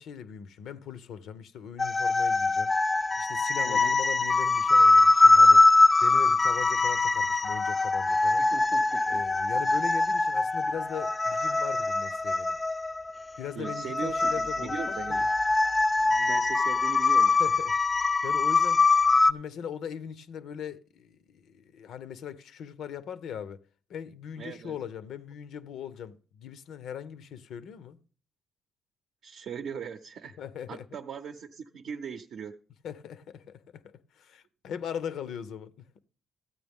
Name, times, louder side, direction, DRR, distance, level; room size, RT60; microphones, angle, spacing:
voice 1, 0.0-2.7 3.2-5.6 6.0-8.4 9.1-12.6 13.4-15.3 17.4-18.8 19.2-23.6 23.9-28.0 30.4-30.9 32.8-35.9, left 8 dB, 80° left, 0.7 m, -40 dB
sound 1, 1.8-19.3, left 3 dB, 20° left, 0.4 m, -23 dB
voice 2, 3.7-4.0 8.4-9.2 13.6-15.3 16.1-17.4 24.4-24.8 29.2-30.4 30.7-32.6, right 7 dB, 70° right, 0.6 m, -39 dB
14.0 x 8.8 x 3.5 m
cardioid pair, 105°, 0 cm